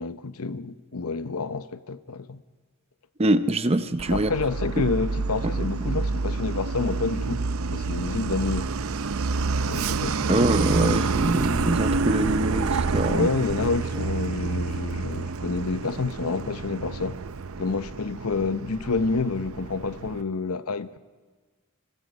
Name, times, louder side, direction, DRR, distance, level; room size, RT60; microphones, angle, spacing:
voice 1, 0.0-2.4 4.1-7.4 7.7-8.7 9.7-11.0 13.1-17.2 17.6-21.0, left 4 dB, 75° left, 0.8 m, -29 dB
voice 2, 3.2-4.3 5.6-5.7 10.3-13.3, right 1 dB, 25° right, 0.8 m, -24 dB
Truck, 4.0-20.2, right 4 dB, 65° right, 0.6 m, -28 dB
29.0 x 21.0 x 5.3 m
head